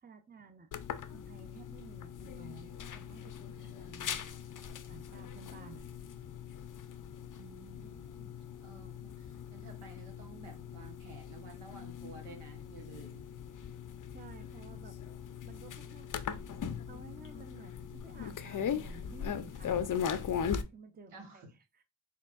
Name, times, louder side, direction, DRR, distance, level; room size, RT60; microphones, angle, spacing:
voice 1, 0.0-0.7 1.1-4.2 4.9-5.8 14.1-15.0 15.4-16.1 16.9-19.9 20.7-21.8, right 4 dB, 20° right, 0.6 m, -53 dB
sound 1, 0.7-20.6, left 8 dB, 40° left, 0.5 m, -40 dB
voice 2, 7.4-13.3 21.1-21.5, right 3 dB, 85° right, 1.3 m, -53 dB
4.4 x 3.6 x 2.4 m
cardioid pair, 55°, 50 cm